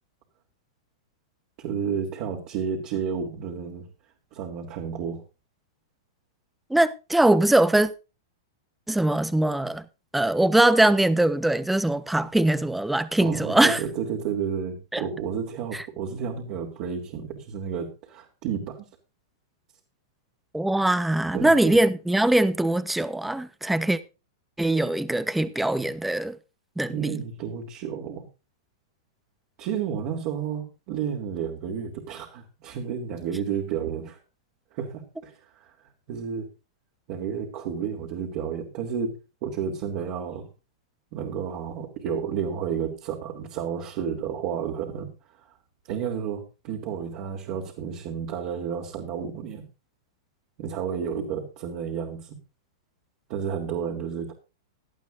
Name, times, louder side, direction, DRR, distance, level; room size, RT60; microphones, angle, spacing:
voice 1, 1.6-3.9 4.3-5.2 13.2-18.9 21.3-21.8 26.9-28.3 29.6-34.2 34.7-36.5 37.1-40.5 41.1-45.1 45.4-45.5 45.9-49.6 50.6-52.4 53.3-54.3, right 7 dB, 50° right, 3.1 m, -31 dB
voice 2, 6.7-7.9 8.9-9.8 10.1-13.8 14.9-15.0 15.7-15.8 20.5-24.0 24.6-26.4 26.8-27.2, right 1 dB, 5° right, 1.0 m, -22 dB
18.0 x 12.0 x 2.6 m
hypercardioid pair, 105°, 2 cm